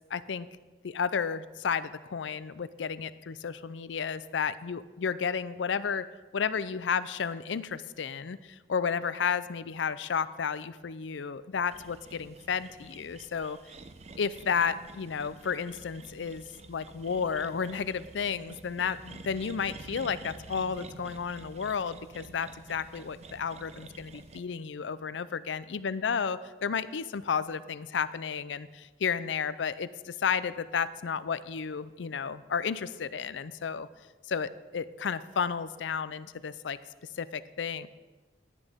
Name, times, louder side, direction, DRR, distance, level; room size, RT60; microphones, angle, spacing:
voice 1, 0.1-0.5 0.8-13.6 14.2-33.9 34.3-36.8 37.1-37.9, left 6 dB, 90° left, 16 dB, 0.5 m, -32 dB
sound 1, 11.7-24.4, right 2 dB, 40° right, 0.6 m, -49 dB
15.0 x 11.0 x 3.6 m, 1.3 s
head